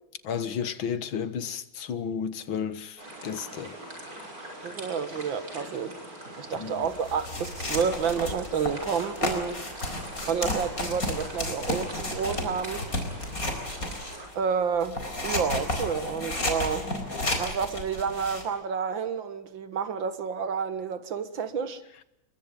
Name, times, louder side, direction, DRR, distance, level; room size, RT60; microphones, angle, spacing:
voice 1, 0.2-3.8 6.5-6.9, left 7 dB, 75° left, 2.1 m, -33 dB
sound 1, 3.0-14.3, right 1 dB, 45° right, 6.9 m, -43 dB
voice 2, 4.6-6.0 6.4-9.6 10.3-12.8 14.3-21.8, right 6 dB, 70° right, 2.3 m, -30 dB
sound 2, 6.8-14.3 14.8-18.4, left 1 dB, 45° left, 4.8 m, -32 dB
29.0 x 22.5 x 5.2 m
omnidirectional pair, 2.2 m